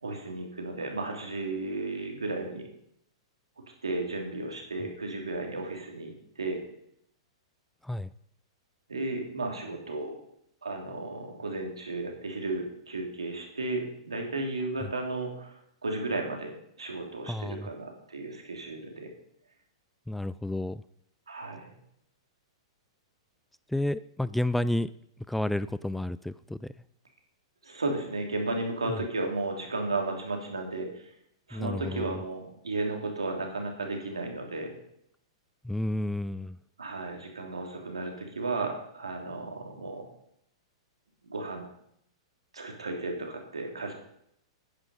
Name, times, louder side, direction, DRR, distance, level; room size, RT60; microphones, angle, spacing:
voice 1, 0.0-2.7 3.8-6.6 8.9-10.1 10.6-15.5 15.8-19.1 21.3-21.8 27.6-31.0 31.5-34.7 36.8-40.0 41.2-41.7 42.5-43.9, right 2 dB, 90° right, 2 dB, 3.0 m, -34 dB
voice 2, 17.3-17.7 20.1-20.8 23.7-24.9 25.3-26.7 28.9-29.0 31.5-32.2 35.6-36.6, left 1 dB, 5° left, 16 dB, 0.3 m, -31 dB
10.0 x 9.5 x 5.5 m, 0.73 s
hypercardioid pair, 110°, 3 cm